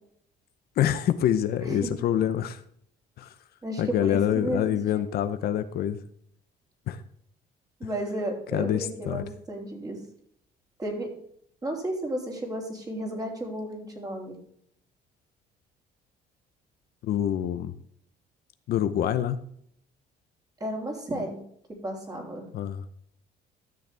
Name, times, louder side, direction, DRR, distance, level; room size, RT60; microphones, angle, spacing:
voice 1, 0.8-2.6 3.2-3.3 3.8-6.0 6.9-7.0 8.5-9.2 17.0-17.7 18.7-19.4 22.5-22.8, left 10 dB, 65° left, 11 dB, 0.8 m, -26 dB
voice 2, 3.6-5.0 7.8-10.0 10.8-11.2 11.6-14.4 20.6-21.4 21.8-22.5, right 1 dB, 20° right, 1 dB, 3.2 m, -33 dB
13.0 x 6.5 x 3.4 m, 0.66 s
cardioid pair, 110°, 17 cm